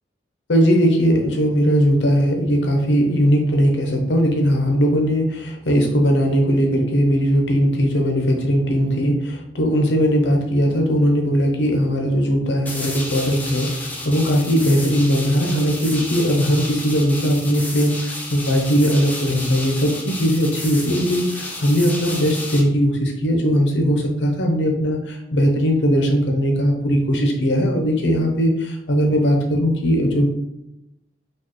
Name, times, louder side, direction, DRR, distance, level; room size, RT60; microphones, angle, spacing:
voice 1, 0.5-30.3, equal, 80° left, 2 dB, 0.8 m, -19 dB
sound 1, 12.7-22.6, left 1 dB, 10° left, 0.6 m, -32 dB
4.5 x 2.4 x 3.0 m, 0.88 s
head